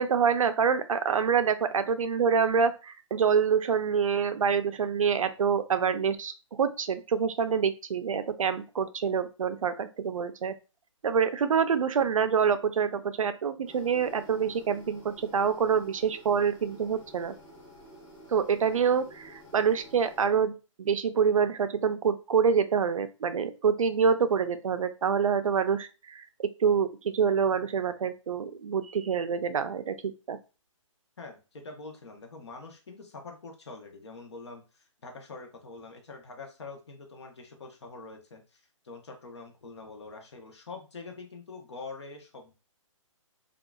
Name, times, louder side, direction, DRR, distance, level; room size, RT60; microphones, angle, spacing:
voice 1, 0.0-10.5 11.0-17.3 18.3-26.2 26.6-30.4, right 6 dB, 85° right, 10 dB, 0.5 m, -26 dB
sound 1, 13.6-20.3, equal, 10° left, 0.7 m, -51 dB
voice 2, 31.2-42.5, left 3 dB, 55° left, 3 dB, 0.8 m, -45 dB
3.6 x 2.4 x 2.3 m, 0.31 s
hypercardioid pair, 170°, 17 cm